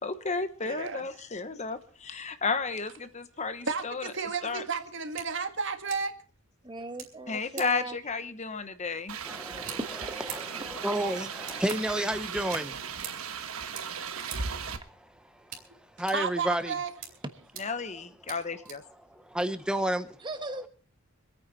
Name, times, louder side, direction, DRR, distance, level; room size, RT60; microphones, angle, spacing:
voice 1, 0.0-4.0 4.4-4.6 7.3-9.2 17.6-18.8, left 4 dB, 35° left, 11 dB, 1.1 m, -33 dB
voice 2, 0.6-1.1 3.7-6.1 15.7-15.8 16.1-16.9, right 5 dB, 60° right, 8 dB, 1.7 m, -32 dB
sound 1, 5.2-5.3 5.9-6.0 7.0-7.1 7.6-7.7 9.6-9.8 10.3-10.4 11.5-11.8 12.5-12.6 13.0-13.1 13.8-13.9 14.2-14.4 15.5-15.6 16.1-16.2 17.0-17.1 17.5-17.6 18.3-18.4 18.6-18.8 19.4-19.5, right 8 dB, 45° right, 3.6 m, -40 dB
voice 3, 6.6-8.0 9.8-10.2 20.2-20.7, right 1 dB, 20° right, 8 dB, 1.3 m, -37 dB
sound 2, 9.1-14.8, right 6 dB, 85° right, 1.3 m, -37 dB
voice 4, 9.2-10.0 10.3-12.7 14.1-15.1 15.5-15.6 16.0-16.7 19.1-20.2, right 1 dB, 5° right, 9 dB, 1.0 m, -32 dB
25.5 x 9.3 x 4.1 m, 0.43 s
head